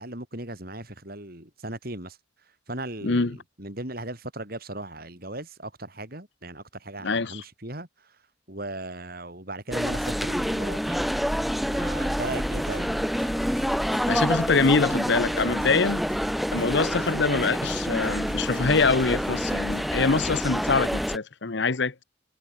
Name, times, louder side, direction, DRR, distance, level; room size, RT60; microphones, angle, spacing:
voice 1, 0.0-2.2 2.7-8.2 8.5-11.1 11.7-12.9, right 1 dB, 50° right, 7.2 m, -37 dB
voice 2, 3.0-3.4 7.0-7.4 14.1-16.0 16.5-22.0, left 4 dB, 60° left, 0.9 m, -24 dB
sound 1, 9.7-21.2, equal, ahead, 2.4 m, -27 dB
sound 2, 12.2-20.0, left 1 dB, 20° left, 3.3 m, -45 dB
head